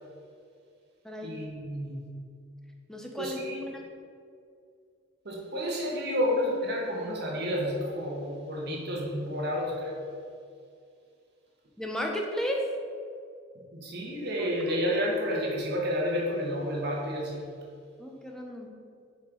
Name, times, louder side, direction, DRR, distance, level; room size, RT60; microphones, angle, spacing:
voice 1, 1.2-2.1 3.2-3.6 5.2-10.0 13.7-17.4, equal, 60° right, -2 dB, 1.2 m, -30 dB
voice 2, 2.9-3.4 3.7-3.8 11.8-12.6 18.0-18.7, equal, 5° left, 0 dB, 0.7 m, -33 dB
7.2 x 4.6 x 3.8 m, 2.3 s
head